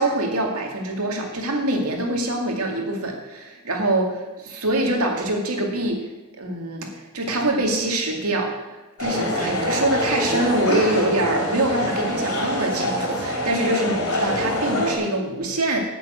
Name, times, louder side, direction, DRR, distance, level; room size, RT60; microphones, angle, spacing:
voice 1, 0.0-6.0 6.4-15.8, right 1 dB, 80° right, 1 dB, 2.3 m, -24 dB
sound 1, 9.0-15.0, left 1 dB, 85° left, 3.5 m, -25 dB
10.0 x 6.8 x 8.1 m, 1.1 s
head